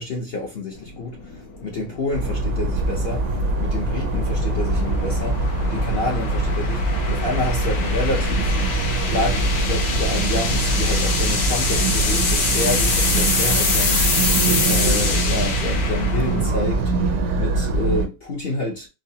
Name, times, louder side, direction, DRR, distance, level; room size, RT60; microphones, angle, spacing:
voice 1, 0.0-3.3 3.6-8.6 9.0-16.9 17.3-18.9, left 2 dB, 60° left, 0.6 m, -29 dB
sound 1, 0.8-17.0, left 4 dB, 80° left, 1.6 m, -26 dB
sound 2, 2.1-18.1, right 2 dB, 75° right, 0.6 m, -23 dB
4.6 x 2.0 x 2.7 m
omnidirectional pair, 1.9 m